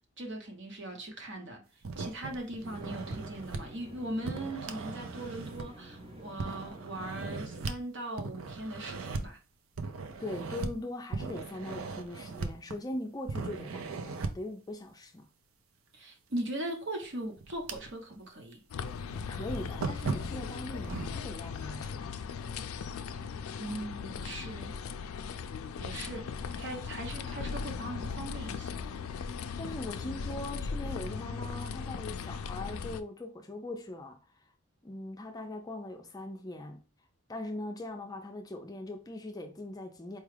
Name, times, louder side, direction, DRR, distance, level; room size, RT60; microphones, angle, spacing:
voice 1, 0.2-1.6 2.0-9.4 15.9-18.6 23.6-24.7 25.8-26.3 26.6-28.8, right 1 dB, 60° right, 1.0 m, -39 dB
sound 1, 1.8-3.6 4.3-5.9 6.4-7.8 8.2-9.3 9.8-10.7 11.1-12.9 13.3-14.5 16.4-16.5 17.0-18.2 18.5-18.6 19.1-21.1, right 4 dB, 75° right, 0.5 m, -38 dB
sound 2, 2.6-7.7, right 1 dB, 25° right, 0.7 m, -50 dB
voice 2, 10.2-15.3 19.3-22.2 29.6-34.2 34.8-36.8 37.3-40.2, left 1 dB, 20° left, 0.4 m, -40 dB
sound 3, 18.7-33.0, left 6 dB, 85° left, 0.4 m, -38 dB
4.5 x 2.4 x 3.2 m
head